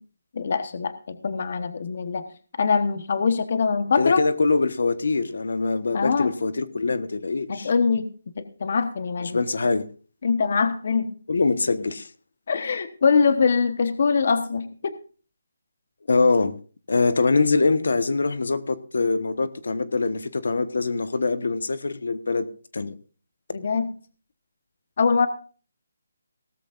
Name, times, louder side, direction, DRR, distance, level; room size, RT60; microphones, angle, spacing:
voice 1, 0.3-2.2 2.6-4.3 5.9-6.3 7.5-8.1 8.3-9.4 10.2-11.1 12.5-14.9 23.5-23.9 25.0-25.3, left 5 dB, 45° left, 11 dB, 1.1 m, -23 dB
voice 2, 3.9-7.7 9.2-9.9 11.3-12.1 16.1-16.6 16.9-22.5 22.7-22.9, left 3 dB, 70° left, 12 dB, 1.2 m, -23 dB
17.5 x 13.5 x 2.5 m, 0.38 s
hypercardioid pair, 170°, 0 cm